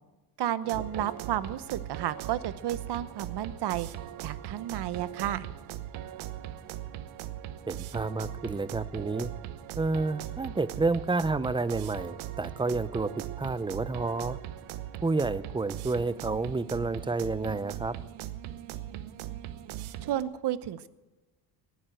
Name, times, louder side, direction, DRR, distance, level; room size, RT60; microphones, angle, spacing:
voice 1, 0.4-3.9 4.2-5.5 20.0-20.9, right 12 dB, 60° right, 15 dB, 0.9 m, -32 dB
sound 1, 0.6-20.2, right 12 dB, 80° right, 1.0 m, -40 dB
voice 2, 7.7-9.3 9.8-13.1 13.4-14.4 15.0-18.0, right 3 dB, 10° right, 15 dB, 0.6 m, -30 dB
18.5 x 8.1 x 7.9 m, 1.1 s
supercardioid pair, 80°, 47 cm